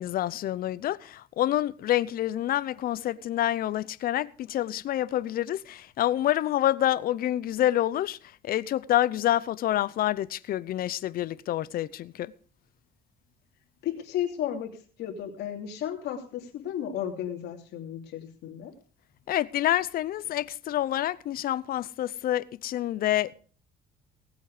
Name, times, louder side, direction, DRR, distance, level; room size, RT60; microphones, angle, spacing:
voice 1, 0.0-8.2 8.4-12.3 19.3-23.3, left 13 dB, 60° left, 0.7 m, -27 dB
voice 2, 13.8-14.7 15.0-18.7, left 10 dB, 80° left, 3.0 m, -33 dB
18.0 x 8.3 x 5.0 m
cardioid pair, 110°, 17 cm